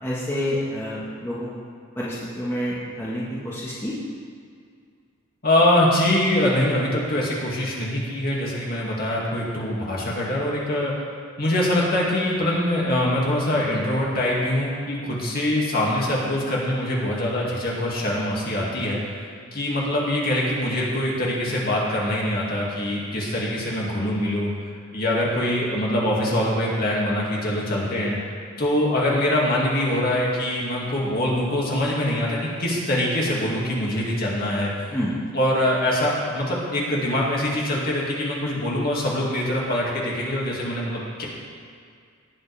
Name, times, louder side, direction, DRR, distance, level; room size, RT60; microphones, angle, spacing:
voice 1, 0.0-1.5 1.9-3.9 34.9-35.1, equal, 10° left, -8 dB, 1.5 m, -28 dB
voice 2, 5.4-10.9 11.4-19.0 19.5-24.5 24.9-28.2 28.6-34.7 35.3-41.2, left 1 dB, 45° left, -4 dB, 2.3 m, -23 dB
18.5 x 8.0 x 3.5 m, 2.2 s
head